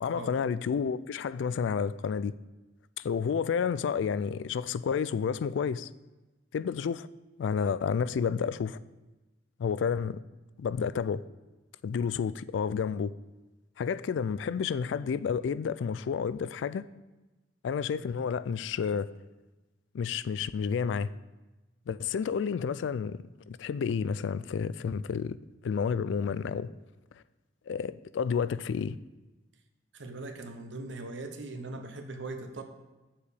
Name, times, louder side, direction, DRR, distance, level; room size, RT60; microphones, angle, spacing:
voice 1, 0.0-2.3 3.0-5.9 6.5-7.1 7.4-8.8 9.6-10.2 10.6-11.2 11.8-13.1 13.8-16.9 17.6-19.1 19.9-21.1 21.9-25.4 25.6-26.7 27.7-29.0, left 6 dB, 75° left, 17 dB, 0.3 m, -30 dB
voice 2, 29.9-32.6, right 2 dB, 75° right, 6 dB, 0.9 m, -40 dB
7.1 x 4.8 x 6.8 m, 1.1 s
head